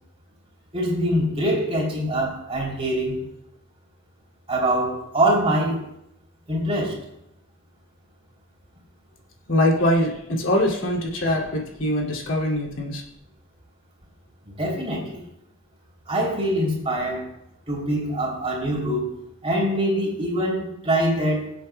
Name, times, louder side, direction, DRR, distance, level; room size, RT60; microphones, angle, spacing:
voice 1, 0.7-3.2 4.5-5.8 6.5-7.0 14.6-15.2 16.1-17.3 17.7-21.5, right 1 dB, 30° right, -2 dB, 3.0 m, -24 dB
voice 2, 9.5-13.0, left 1 dB, 75° left, -1 dB, 2.6 m, -23 dB
23.5 x 8.0 x 2.3 m, 0.80 s
head